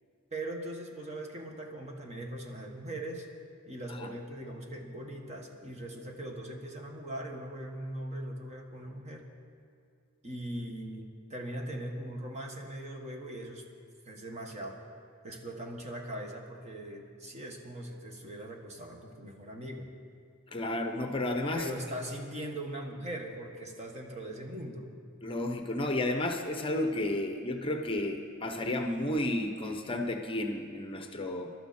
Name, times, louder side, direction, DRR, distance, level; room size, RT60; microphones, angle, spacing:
voice 1, 0.3-3.3 3.7-9.3 10.2-13.6 14.0-14.8 15.2-19.9 21.5-24.9, right 1 dB, 35° right, 2 dB, 1.6 m, -40 dB
voice 2, 20.5-21.7 25.2-31.5, left 1 dB, 25° left, 5 dB, 0.8 m, -32 dB
21.5 x 12.0 x 4.3 m, 2.3 s
head